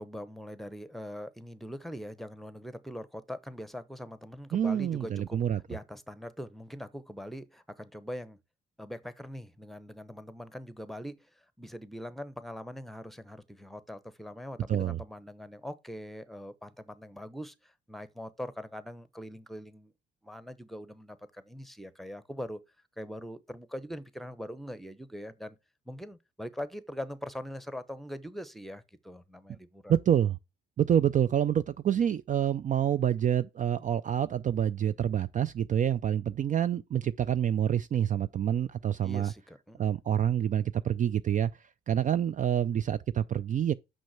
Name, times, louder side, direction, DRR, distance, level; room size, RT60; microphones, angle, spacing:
voice 1, 0.0-5.4 5.7-8.4 8.8-19.9 20.2-22.6 23.0-25.6 25.9-29.9 39.0-39.9, equal, ahead, 0.9 m, -42 dB
voice 2, 4.5-5.6 14.7-15.0 29.9-30.4 30.8-39.3 39.8-41.5 41.9-43.7, right 9 dB, 40° right, 0.4 m, -27 dB
6.2 x 5.4 x 5.7 m
cardioid pair, 90°, 20 cm